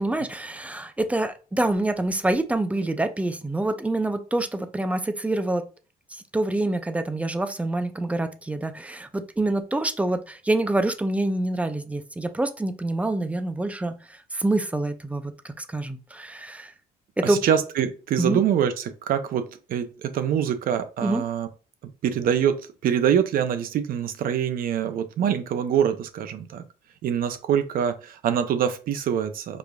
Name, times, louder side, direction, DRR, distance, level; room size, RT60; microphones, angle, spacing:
voice 1, 0.0-5.7 6.1-16.7 17.2-17.4 18.2-18.4 21.0-21.2, right 2 dB, 10° right, 9 dB, 0.4 m, -26 dB
voice 2, 17.2-21.5 22.0-26.6 27.0-29.6, right 8 dB, 60° right, 10 dB, 0.6 m, -25 dB
4.8 x 2.5 x 2.3 m, 0.34 s
cardioid pair, 110°, 17 cm